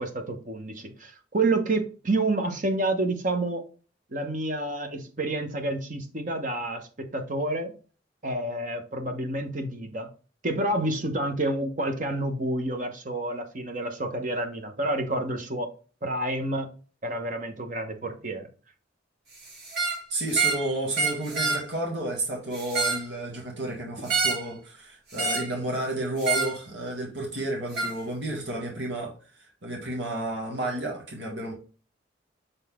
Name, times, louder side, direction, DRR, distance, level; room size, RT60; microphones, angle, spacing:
voice 1, 0.0-3.6 4.1-7.7 8.2-10.1 10.4-15.7 16.0-16.7 17.0-18.5, right 2 dB, 45° right, 1.1 m, -29 dB
sound 1, 19.7-20.0 20.3-20.7 20.9-21.6 22.5-23.1 24.1-24.5 25.2-25.5 26.2-26.6 27.8-27.9, right 4 dB, 65° right, 2.5 m, -27 dB
voice 2, 20.1-29.1 29.6-31.5, right 1 dB, 80° right, 2.0 m, -31 dB
6.7 x 4.1 x 3.7 m
head